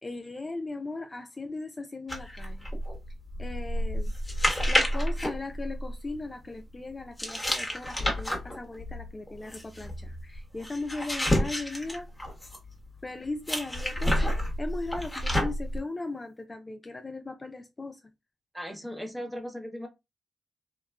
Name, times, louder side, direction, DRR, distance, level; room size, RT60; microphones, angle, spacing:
voice 1, 0.0-2.7 3.4-4.1 4.7-12.1 13.0-14.3 14.6-18.0, left 3 dB, 30° left, 0.3 m, -38 dB
sound 1, 2.1-6.2 7.2-12.7 13.4-15.8, equal, 10° left, 1.0 m, -30 dB
voice 2, 18.5-19.9, equal, 10° right, 0.8 m, -37 dB
3.0 x 2.1 x 2.3 m
cardioid pair, 55°, 0 cm